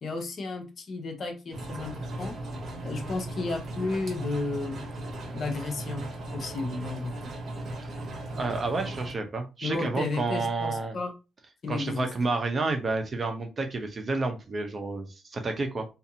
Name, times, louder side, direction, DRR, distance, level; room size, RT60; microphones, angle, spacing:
voice 1, 0.0-2.4 2.8-4.8 5.3-7.3 9.6-11.1 11.6-12.1, left 3 dB, 50° left, 0.7 m, -33 dB
sound 1, 1.5-9.1, right 1 dB, 55° right, 1.2 m, -37 dB
voice 2, 8.3-11.0 11.7-15.9, right 3 dB, 35° right, 0.7 m, -30 dB
2.7 x 2.5 x 2.7 m
cardioid pair, 90°, 0 cm